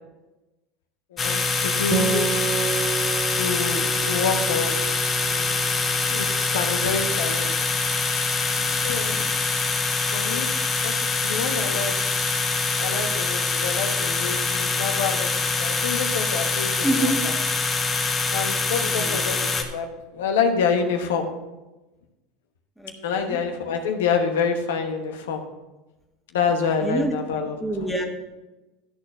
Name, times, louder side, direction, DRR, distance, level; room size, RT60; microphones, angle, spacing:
voice 1, 1.1-2.2 3.3-4.8 5.3-5.5 6.1-7.7 8.0-8.2 8.6-9.2 10.1-10.5 10.8-11.0 11.2-11.9 12.8-15.3 15.6-17.3 18.3-19.9 20.1-21.3 23.0-25.4 26.3-27.6, left 5 dB, 80° left, 4 dB, 1.0 m, -27 dB
sound 1, 1.2-19.6, left 3 dB, 30° left, 1.3 m, -24 dB
Acoustic guitar, 1.9-5.6, right 7 dB, 30° right, 0.7 m, -30 dB
voice 2, 16.8-17.2 18.8-19.2 22.8-23.4 26.8-27.1 27.6-28.0, right 1 dB, ahead, 1 dB, 1.7 m, -26 dB
12.5 x 4.3 x 5.8 m, 1.1 s
hypercardioid pair, 90°, 0 cm